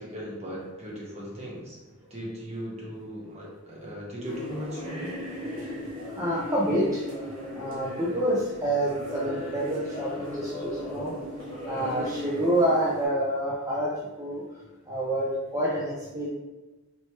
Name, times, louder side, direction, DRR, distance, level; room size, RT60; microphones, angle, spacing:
voice 1, 0.0-1.8 2.1-5.1, equal, 30° right, -4 dB, 1.0 m, -38 dB
sound 1, 4.2-13.1, left 1 dB, 70° right, 1.3 m, -37 dB
voice 2, 6.2-7.0 7.5-11.1 11.6-13.9 14.2-14.4 14.9-16.3, right 1 dB, 15° right, -8 dB, 0.6 m, -27 dB
4.5 x 3.0 x 2.9 m, 1.1 s
head